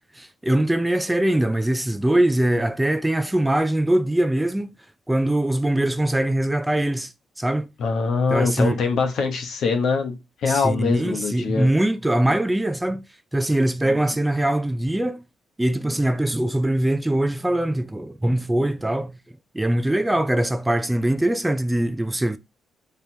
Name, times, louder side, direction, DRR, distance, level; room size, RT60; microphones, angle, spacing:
voice 1, 0.2-4.7 5.1-7.1 7.4-7.7 8.3-8.7 10.5-13.0 13.3-15.2 15.6-19.2 19.5-22.4, right 1 dB, 10° right, 0.4 m, -22 dB
voice 2, 7.8-11.7, left 4 dB, 70° left, 1.0 m, -23 dB
4.4 x 3.3 x 2.7 m
cardioid pair, 90°, 0 cm